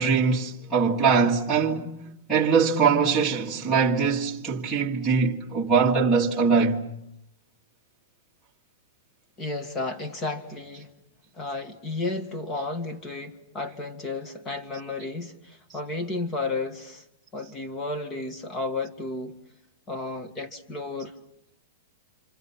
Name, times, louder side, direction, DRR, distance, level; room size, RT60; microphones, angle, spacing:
voice 1, 0.0-6.8, right 5 dB, 5° right, 2.0 m, -22 dB
voice 2, 9.4-10.9 11.4-17.0 17.3-19.4 19.9-21.1, left 3 dB, 15° left, 1.9 m, -32 dB
28.0 x 27.0 x 5.8 m
supercardioid pair, 170°, 0 cm